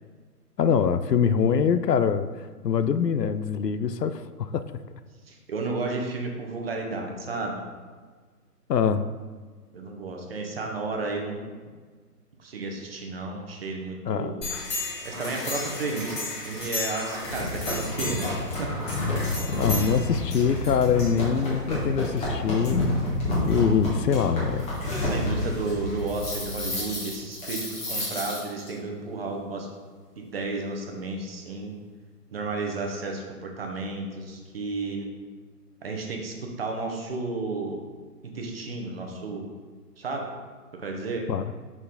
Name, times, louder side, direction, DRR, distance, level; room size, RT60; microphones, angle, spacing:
voice 1, 0.6-4.6 8.7-9.1 14.1-14.4 19.6-22.9 23.4-24.7 41.3-41.4, left 7 dB, 80° left, 11 dB, 0.6 m, -24 dB
voice 2, 5.3-7.6 9.7-11.7 12.4-14.5 15.0-18.3 18.6-18.8 21.5-21.7 24.9-29.7 30.2-31.8 32.3-35.1 35.8-37.8 38.3-39.5 40.0-40.3 40.7-41.3, right 3 dB, 40° right, 2 dB, 0.9 m, -32 dB
sound 1, 14.4-28.7, left 2 dB, 15° left, 1.3 m, -29 dB
5.8 x 4.6 x 4.0 m, 1.5 s
figure-of-eight pair, 140°, 48 cm